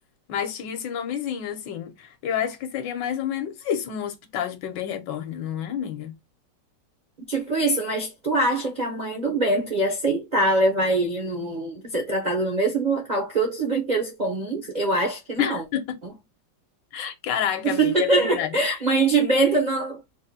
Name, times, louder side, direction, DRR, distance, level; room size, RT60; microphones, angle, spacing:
voice 1, 0.3-6.2 15.4-16.0 16.9-18.5, left 9 dB, 75° left, 1.4 m, -29 dB
voice 2, 7.3-15.6 16.0-16.1 17.6-20.0, right 2 dB, 65° right, 0.4 m, -23 dB
3.7 x 2.2 x 4.0 m
omnidirectional pair, 2.0 m